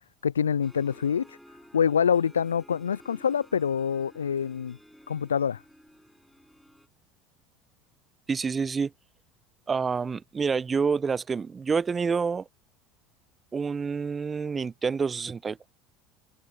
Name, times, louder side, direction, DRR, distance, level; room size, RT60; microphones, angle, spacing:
voice 1, 0.2-1.3 1.7-4.8 5.1-5.6, left 7 dB, 80° left, 0.3 m, -25 dB
Harp, 0.6-6.9, equal, ahead, 7.6 m, -54 dB
voice 2, 8.3-8.9 9.7-12.4 13.5-15.7, right 5 dB, 25° right, 0.8 m, -28 dB
open air
figure-of-eight pair, 70°, 0 cm